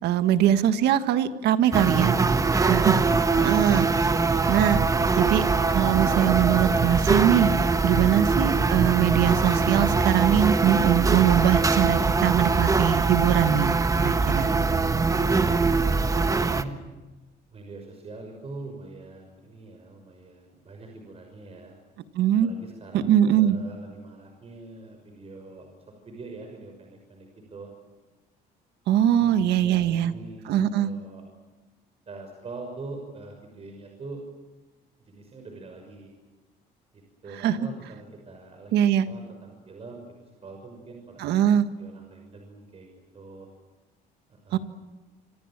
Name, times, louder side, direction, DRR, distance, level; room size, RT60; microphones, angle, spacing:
voice 1, 0.0-2.1 2.5-3.0 3.4-4.1 4.5-4.8 5.1-5.4 5.7-7.5 7.8-14.5 22.2-22.5 22.9-23.6 28.9-30.1 30.5-30.9 37.4-37.6 38.7-39.1 41.2-41.7 44.5-44.6, right 10 dB, 80° right, 10 dB, 1.7 m, -22 dB
sound 1, 1.7-16.6, right 4 dB, 20° right, 1.3 m, -22 dB
voice 2, 16.1-16.7 17.5-21.7 22.4-25.7 26.1-27.7 29.2-31.2 32.1-34.2 35.1-36.1 36.9-43.5 44.3-44.6, right 2 dB, 35° right, 3 dB, 6.0 m, -43 dB
26.5 x 25.5 x 7.6 m, 1.2 s
cardioid pair, 110°, 17 cm